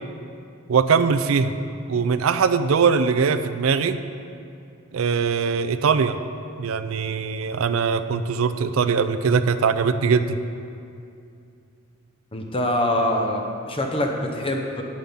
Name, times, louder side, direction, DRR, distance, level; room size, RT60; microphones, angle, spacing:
voice 1, 0.7-1.5 1.9-4.0 4.9-6.2 6.6-10.4, right 5 dB, 90° right, 11 dB, 0.4 m, -21 dB
voice 2, 12.3-14.8, left 1 dB, 25° left, 2 dB, 0.9 m, -24 dB
9.0 x 7.2 x 5.6 m, 2.6 s
head